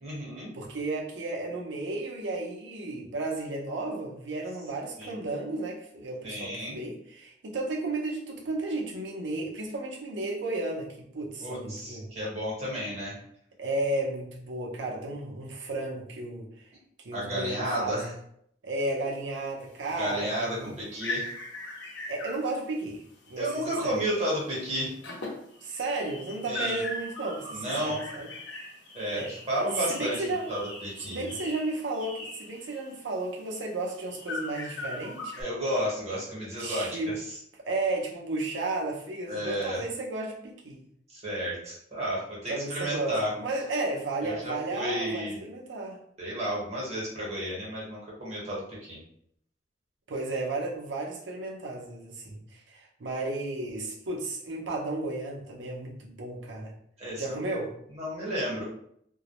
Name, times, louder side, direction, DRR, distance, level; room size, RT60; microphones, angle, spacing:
voice 1, 0.0-0.5 5.0-5.1 6.2-6.8 11.4-13.2 17.1-18.1 20.0-21.3 23.4-24.9 26.5-26.8 27.5-28.0 28.9-30.2 30.5-31.3 35.4-36.9 39.3-39.8 41.1-43.3 44.2-45.4 46.2-49.0 57.0-57.4 58.0-58.6, equal, 35° right, -6 dB, 1.0 m, -32 dB
voice 2, 0.5-12.1 13.6-16.7 17.0-18.1 18.6-20.7 22.1-23.0 23.3-24.0 25.6-28.3 29.1-29.3 29.9-30.5 31.1-35.4 36.6-37.1 37.6-40.8 42.5-46.0 50.1-56.7 57.2-57.7, right 2 dB, 90° right, 0 dB, 0.6 m, -33 dB
sound 1, 19.6-24.0 24.2-24.5 24.8-35.4, left 2 dB, 85° left, 0.7 m, -40 dB
2.2 x 2.0 x 2.8 m, 0.69 s
head